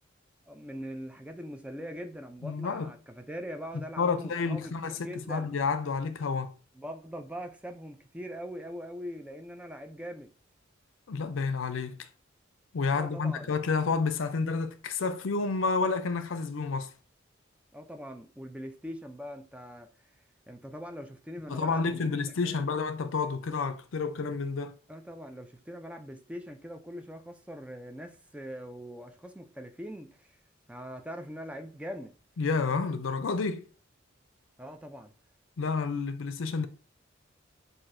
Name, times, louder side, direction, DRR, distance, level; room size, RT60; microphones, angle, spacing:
voice 1, 0.5-4.7 5.0-5.5 6.7-10.3 12.9-13.5 17.7-19.9 20.5-22.0 22.4-22.6 24.9-30.4 30.7-32.1 34.6-35.1, equal, 5° right, 0.4 m, -42 dB
voice 2, 2.4-2.9 4.0-6.5 11.1-12.1 12.7-16.9 21.5-24.8 32.4-33.7 35.6-36.7, left 4 dB, 90° left, 0.5 m, -30 dB
5.8 x 2.6 x 2.6 m
head